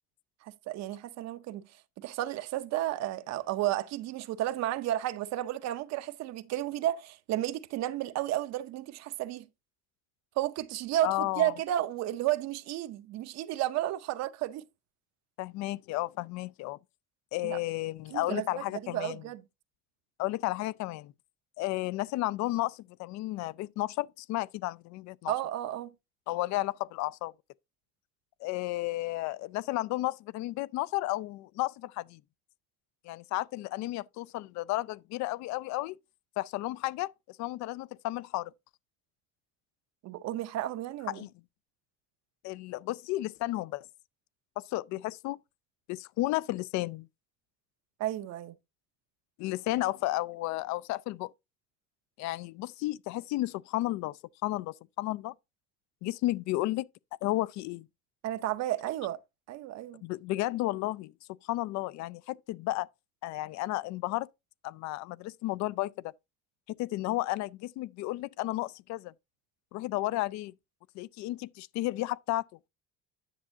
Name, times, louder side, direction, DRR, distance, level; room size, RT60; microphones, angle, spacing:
voice 1, 0.4-1.6 2.0-9.5 10.4-14.7 17.4-17.6 18.1-19.4 25.3-25.9 40.0-41.3 48.0-48.5 58.2-59.2 59.5-60.0, right 13 dB, 60° right, 0.7 m, -32 dB
voice 2, 11.0-11.5 15.4-16.8 17.3-19.2 20.2-21.1 21.6-25.3 26.3-27.3 28.4-32.2 33.0-36.0 36.4-37.1 37.4-38.5 41.1-41.3 42.4-43.9 44.7-45.4 45.9-47.1 49.4-51.3 52.2-55.3 56.0-56.9 57.2-57.9 60.0-61.1 61.4-62.9 63.2-64.3 64.6-66.1 66.8-69.1 69.7-70.5 70.9-72.4, left 17 dB, 65° left, 0.4 m, -33 dB
10.0 x 7.1 x 2.7 m
cardioid pair, 180°, 30 cm